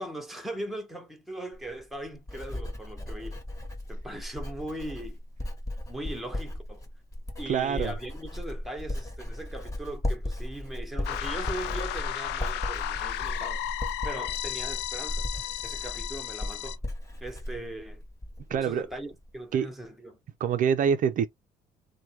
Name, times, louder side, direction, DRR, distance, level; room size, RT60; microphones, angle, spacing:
voice 1, 0.0-3.4 3.9-5.2 5.9-6.8 7.4-13.7 14.0-15.3 15.6-16.8 17.2-18.0 18.5-20.2, right 1 dB, ahead, 0.9 m, -39 dB
Writing, 1.5-18.6 18.9-19.3, left 1 dB, 20° left, 1.1 m, -36 dB
voice 2, 7.5-7.9 18.5-18.9 19.5-19.7 20.4-21.3, right 8 dB, 50° right, 0.4 m, -25 dB
sound 1, 11.0-16.8, left 12 dB, 80° left, 0.4 m, -34 dB
3.2 x 2.2 x 2.8 m
cardioid pair, 110°, 17 cm